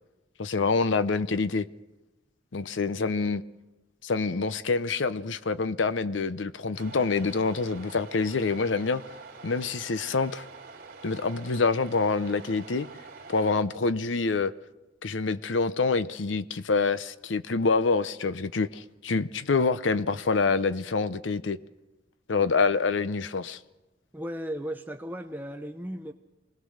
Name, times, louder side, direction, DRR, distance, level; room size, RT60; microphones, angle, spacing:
voice 1, 0.4-1.7 2.5-3.4 4.0-9.0 9.4-10.4 11.0-12.9 13.3-14.5 15.0-21.6 22.3-23.6, left 4 dB, 80° left, 0.7 m, -26 dB
sound 1, 6.7-13.6, right 4 dB, 55° right, 2.9 m, -46 dB
voice 2, 24.1-26.1, equal, 10° right, 0.7 m, -35 dB
25.0 x 18.5 x 6.5 m
head